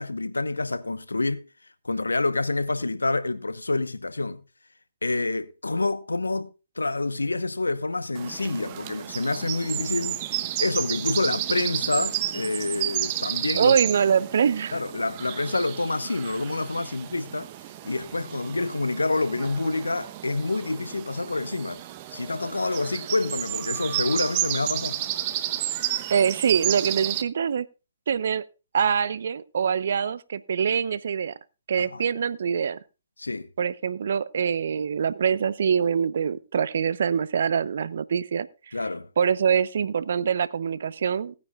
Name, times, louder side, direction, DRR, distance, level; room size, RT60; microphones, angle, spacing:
voice 1, 0.0-1.5 1.8-4.4 5.0-6.5 6.8-10.2 10.6-13.7 14.7-17.5 17.8-21.8 22.1-25.0 31.8-32.0 33.2-33.5 38.7-39.1, left 2 dB, 85° left, 1.0 m, -27 dB
sound 1, 8.2-27.2, right 14 dB, 35° right, 0.9 m, -32 dB
voice 2, 13.6-14.8 26.1-27.7 28.1-28.4 28.7-31.3 31.7-32.8 33.6-38.7 39.2-41.3, right 7 dB, 60° right, 0.8 m, -24 dB
18.5 x 9.5 x 2.4 m
figure-of-eight pair, 135°, 0 cm